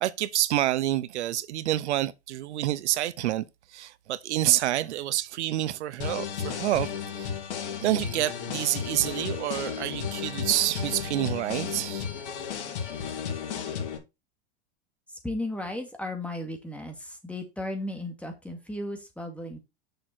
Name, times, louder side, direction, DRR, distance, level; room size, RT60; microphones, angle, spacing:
voice 1, 0.0-3.4 3.7-7.3 7.8-12.1, right 14 dB, 80° right, 0.7 m, -28 dB
sound 1, 6.0-14.0, left 7 dB, 80° left, 2.6 m, -33 dB
voice 2, 15.1-19.6, left 1 dB, 5° left, 2.3 m, -35 dB
6.7 x 6.3 x 4.3 m
hypercardioid pair, 120°, 34 cm